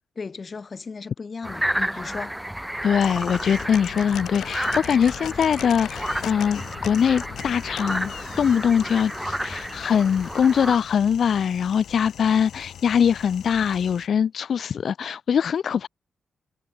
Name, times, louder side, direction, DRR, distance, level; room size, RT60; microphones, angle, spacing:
voice 1, 0.2-2.3, left 4 dB, 35° left, 2.0 m, -35 dB
sound 1, 1.4-10.8, equal, 5° right, 1.1 m, -31 dB
voice 2, 2.8-15.9, left 7 dB, 60° left, 0.7 m, -22 dB
sound 2, 2.9-14.1, left 10 dB, 80° left, 6.8 m, -39 dB
cardioid pair, 110°, 0 cm